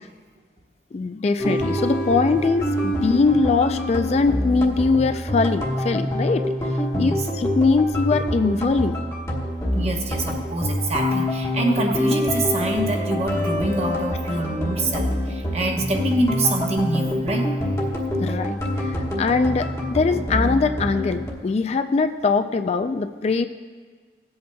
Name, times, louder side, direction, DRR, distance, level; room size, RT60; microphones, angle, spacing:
voice 1, 0.9-9.0 18.2-23.5, left 4 dB, 35° left, 9 dB, 0.3 m, -22 dB
sound 1, 1.4-21.3, left 1 dB, 20° left, 1.2 m, -26 dB
voice 2, 6.9-7.2 9.8-17.5, right 2 dB, 35° right, 2 dB, 1.0 m, -25 dB
18.0 x 7.8 x 2.2 m, 1.6 s
head